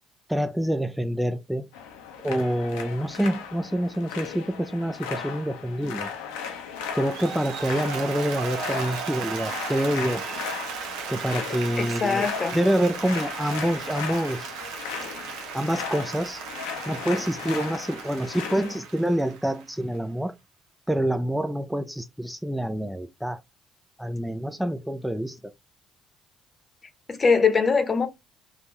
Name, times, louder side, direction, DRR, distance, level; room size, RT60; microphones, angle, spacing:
voice 1, 0.3-1.7 2.2-6.1 6.9-10.3 11.1-14.5 15.5-16.4 16.9-20.3 20.9-23.4 24.0-25.4, equal, 5° right, 0.4 m, -27 dB
sound 1, 1.7-18.8, left 7 dB, 85° left, 0.6 m, -37 dB
Applause, 6.8-19.9, right 6 dB, 80° right, 0.7 m, -36 dB
voice 2, 11.8-12.6 27.1-28.1, left 5 dB, 40° left, 0.8 m, -22 dB
3.6 x 2.2 x 3.0 m
hypercardioid pair, 55°, 0 cm